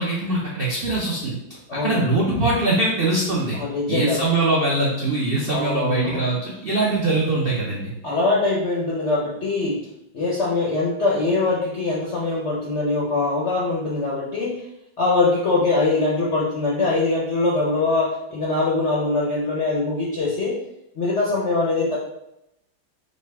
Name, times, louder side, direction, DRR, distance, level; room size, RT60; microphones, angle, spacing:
voice 1, 0.0-1.4 1.7-3.6 3.9-7.9, right 2 dB, 80° right, -6 dB, 0.5 m, -22 dB
voice 2, 1.7-2.1 3.5-4.2 5.5-6.2 8.0-9.8 10.1-14.6 15.0-20.6 21.0-22.0, left 3 dB, 70° left, -5 dB, 0.6 m, -22 dB
4.3 x 2.7 x 3.3 m, 0.84 s
omnidirectional pair, 2.2 m